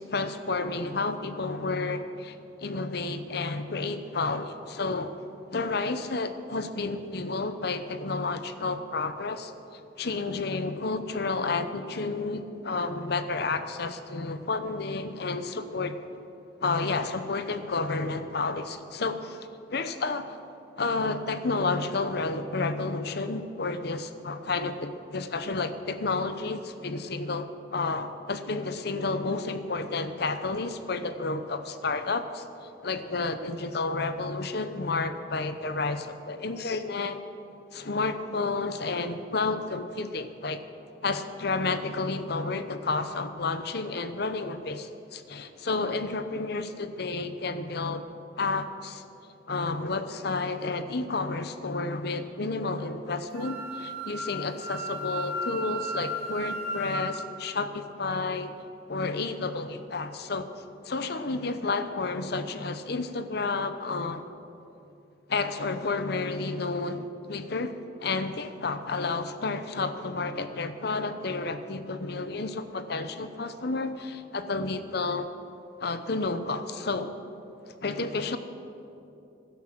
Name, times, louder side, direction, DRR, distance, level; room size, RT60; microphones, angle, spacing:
voice 1, 0.0-2.4 2.6-5.2 5.5-16.0 16.6-19.4 19.7-20.4 20.8-32.4 32.8-37.2 37.7-40.6 41.0-48.1 48.4-49.0 49.5-58.5 58.9-60.5 60.8-64.2 65.3-67.7 68.0-75.3 75.8-77.1 77.8-78.4, left 3 dB, 60° left, 10 dB, 0.8 m, -31 dB
Wind instrument woodwind instrument, 53.3-57.1, equal, 40° right, 3.8 m, -34 dB
16.0 x 11.5 x 6.0 m, 2.8 s
head